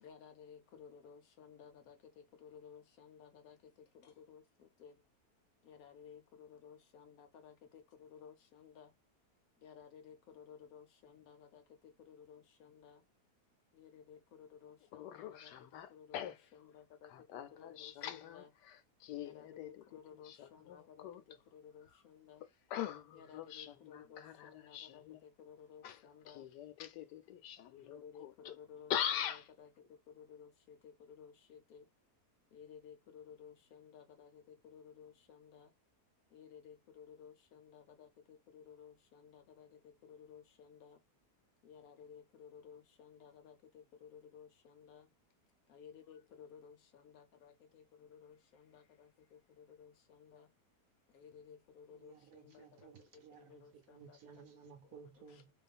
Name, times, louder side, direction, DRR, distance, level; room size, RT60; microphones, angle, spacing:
voice 1, 0.0-2.0 2.4-3.6 4.0-4.4 4.8-4.9 5.7-8.9 9.6-11.6 12.1-13.0 13.8-15.5 15.9-18.5 19.2-21.1 21.5-22.4 23.1-26.5 27.8-28.9 29.2-29.7 30.1-31.8 32.5-35.7 36.3-39.7 40.0-41.0 41.6-45.1 45.7-50.5 51.1-52.9 53.5-54.4 54.9-55.3, left 7 dB, 70° left, 1.0 m, -57 dB
voice 2, 14.9-16.4 17.1-19.8 20.2-21.2 22.7-25.2 25.8-26.0 26.3-28.5 28.9-29.5, left 10 dB, 90° left, 1.2 m, -43 dB
voice 3, 51.9-55.5, right 7 dB, 65° right, 1.0 m, -57 dB
2.6 x 2.4 x 2.3 m
omnidirectional pair, 1.8 m